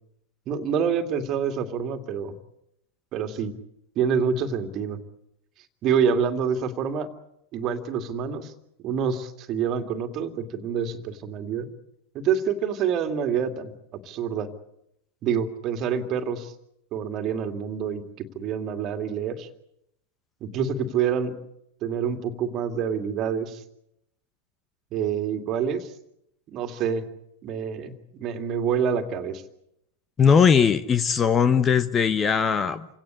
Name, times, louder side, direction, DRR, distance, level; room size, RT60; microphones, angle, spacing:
voice 1, 0.5-2.4 3.1-3.5 4.0-5.0 5.8-7.1 7.5-8.5 8.8-11.7 12.1-14.5 15.2-16.5 16.9-19.5 20.4-21.3 21.8-23.6 24.9-25.9 26.5-27.0 27.4-29.4, right 7 dB, 35° right, 7 dB, 2.4 m, -27 dB
voice 2, 30.2-32.9, left 6 dB, 20° left, 14 dB, 1.0 m, -19 dB
28.5 x 17.5 x 8.4 m, 0.79 s
figure-of-eight pair, 90°, 0 cm